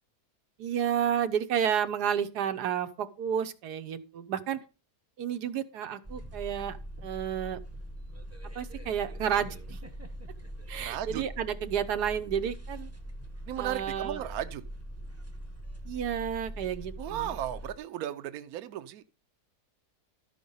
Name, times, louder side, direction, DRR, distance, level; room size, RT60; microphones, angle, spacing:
voice 1, 0.6-4.6 5.2-6.8 7.0-7.6 8.5-9.8 10.7-12.9 13.6-14.2 15.8-17.4, right 9 dB, 85° right, 1.4 m, -31 dB
sound 1, 6.0-17.8, equal, 15° right, 0.7 m, -42 dB
voice 2, 10.8-11.2 13.5-14.6 17.0-19.0, right 11 dB, 70° right, 1.1 m, -35 dB
12.5 x 5.1 x 5.5 m
omnidirectional pair, 1.7 m